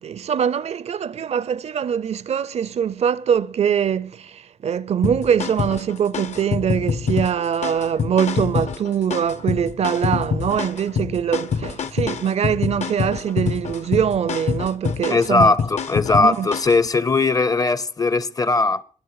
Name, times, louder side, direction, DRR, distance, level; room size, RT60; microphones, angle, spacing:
voice 1, 0.0-15.5 16.2-16.5, right 8 dB, 55° right, 0.5 m, -23 dB
sound 1, 5.0-16.8, left 6 dB, 60° left, 0.8 m, -26 dB
voice 2, 15.1-18.8, left 3 dB, 30° left, 0.6 m, -19 dB
21.5 x 7.6 x 4.8 m
wide cardioid pair, 140°, 13 cm